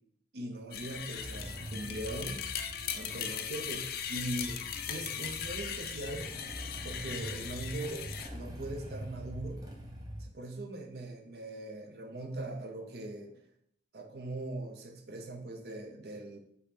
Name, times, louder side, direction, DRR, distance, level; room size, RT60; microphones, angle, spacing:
voice 1, 0.3-2.4 2.9-4.6 4.9-6.3 6.8-9.6 10.2-13.4 13.9-16.4, right 1 dB, 65° right, 3 dB, 0.6 m, -40 dB
sound 1, 0.7-8.3, left 8 dB, 55° left, 0.3 m, -39 dB
Motorcycle / Engine starting, 1.2-10.3, equal, 20° right, 0.6 m, -44 dB
5.1 x 2.3 x 4.2 m, 0.67 s
head